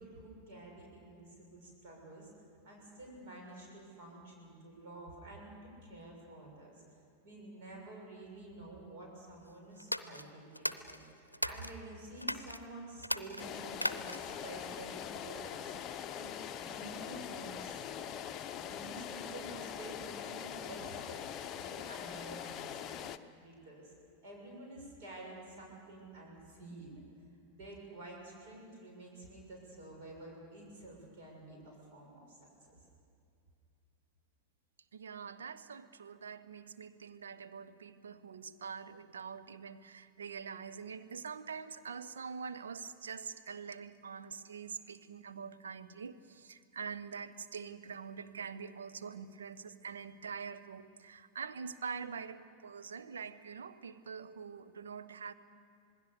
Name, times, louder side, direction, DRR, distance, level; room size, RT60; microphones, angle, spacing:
voice 1, 0.0-2.3 2.6-6.8 7.2-23.9 24.2-27.0 27.5-32.8, right 2 dB, 50° right, -1 dB, 6.7 m, -50 dB
sound 1, 9.8-11.8 12.2-12.6 13.0-14.4, equal, 90° left, 0.7 m, -37 dB
sound 2, 13.4-23.2, left 9 dB, 30° left, 0.8 m, -43 dB
voice 2, 34.9-55.3, right 6 dB, 70° right, 10 dB, 0.9 m, -45 dB
26.5 x 20.0 x 6.8 m, 2.4 s
figure-of-eight pair, 90°, 0 cm